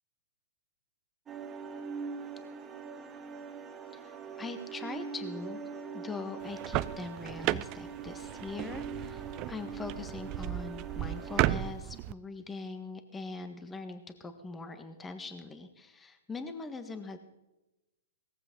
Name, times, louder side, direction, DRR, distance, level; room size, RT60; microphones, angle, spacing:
sound 1, 1.3-11.7, right 5 dB, 20° right, 1.9 m, -43 dB
voice 1, 3.9-5.6 5.9-17.2, left 3 dB, 15° left, 8 dB, 1.6 m, -42 dB
sound 2, 6.4-12.1, right 16 dB, 40° right, 0.5 m, -34 dB
18.5 x 14.5 x 3.9 m, 0.97 s
hypercardioid pair, 125°, 0 cm